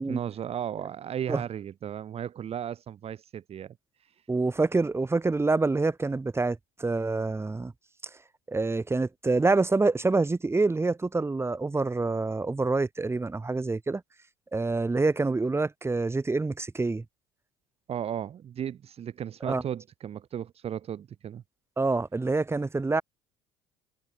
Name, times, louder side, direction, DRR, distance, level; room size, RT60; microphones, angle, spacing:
voice 1, 0.1-3.7 4.0-4.1 17.9-21.4, right 9 dB, 40° right, 3.4 m, -35 dB
voice 2, 4.3-7.7 8.5-14.0 14.5-17.0 19.4-19.6 21.8-23.0, right 3 dB, 15° right, 6.0 m, -26 dB
hypercardioid pair, 65°, 15 cm